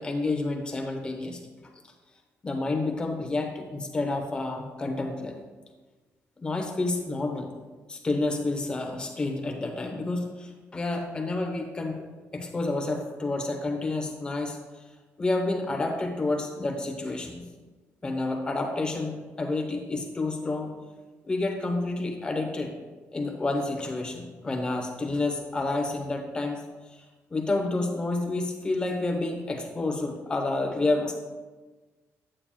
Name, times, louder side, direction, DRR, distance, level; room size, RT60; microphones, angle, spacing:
voice 1, 0.0-1.4 2.4-5.4 6.4-7.5 7.9-12.0 12.3-14.8 15.2-17.4 18.0-20.7 21.2-22.7 23.1-26.6 26.9-27.0 27.3-31.1, left 2 dB, 15° left, 3 dB, 0.9 m, -29 dB
8.7 x 8.7 x 2.3 m, 1.3 s
cardioid pair, 175°, 5 cm